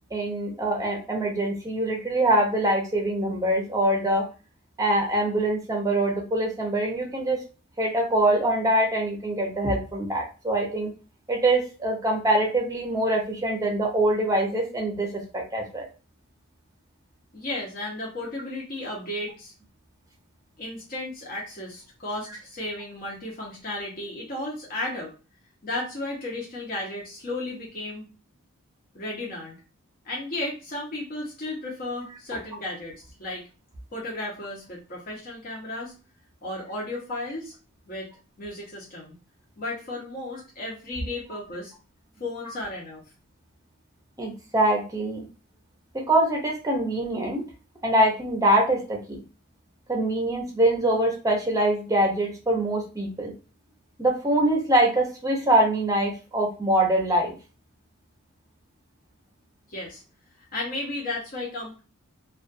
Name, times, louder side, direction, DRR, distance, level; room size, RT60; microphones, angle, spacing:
voice 1, 0.1-4.2 4.8-7.4 7.8-10.9 11.3-15.9 44.2-45.3 45.9-47.4 47.8-49.2 49.9-53.3 54.0-57.3, right 1 dB, 15° right, 0 dB, 0.7 m, -24 dB
voice 2, 17.3-19.5 20.6-25.1 25.6-28.1 28.9-29.5 30.0-32.9 33.2-33.5 33.9-35.9 36.4-37.5 37.9-38.1 38.4-39.1 39.6-41.7 42.2-43.0 59.7-60.0 60.5-61.8, left 2 dB, 40° left, -4 dB, 0.8 m, -34 dB
2.4 x 2.3 x 2.5 m, 0.33 s
head